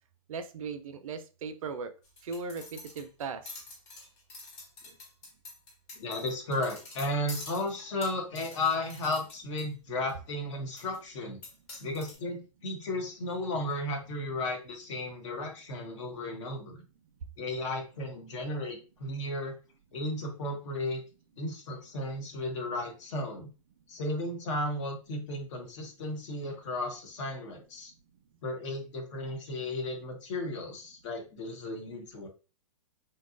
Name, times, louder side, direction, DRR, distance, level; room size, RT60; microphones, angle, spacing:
voice 1, 0.3-1.9 2.2-3.6, right 4 dB, 70° right, 9 dB, 0.5 m, -38 dB
sound 1, 2.0-9.7 10.1-10.2 10.8-11.0 11.4-12.2, left 3 dB, 35° left, 1.1 m, -47 dB
voice 2, 5.9-11.4 11.8-16.8 17.4-19.5 19.9-21.0 21.4-23.5 23.9-27.9 28.4-32.3, left 1 dB, 60° left, 3 dB, 0.9 m, -34 dB
2.8 x 2.3 x 2.4 m, 0.33 s
hypercardioid pair, 130°, 18 cm